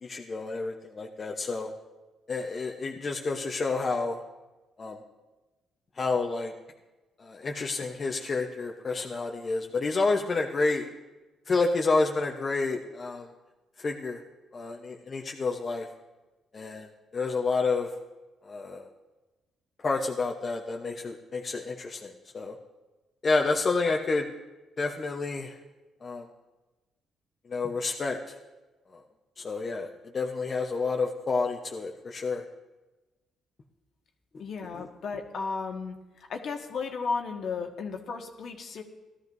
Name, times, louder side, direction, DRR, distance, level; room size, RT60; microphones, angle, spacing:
voice 1, 0.0-1.7 2.3-4.2 4.8-5.0 6.0-6.5 7.2-10.8 11.5-13.3 13.8-14.2 14.5-15.9 16.5-17.9 18.4-18.9 19.8-22.5 23.2-24.3 24.8-25.6 26.0-26.3 27.5-28.3 28.9-29.0 29.4-29.9 30.1-32.4, left 3 dB, 40° left, 1 dB, 0.9 m, -29 dB
voice 2, 34.4-36.0 36.3-38.8, left 4 dB, 65° left, 3 dB, 1.4 m, -34 dB
18.0 x 13.0 x 2.7 m, 1.1 s
cardioid pair, 90°, 0 cm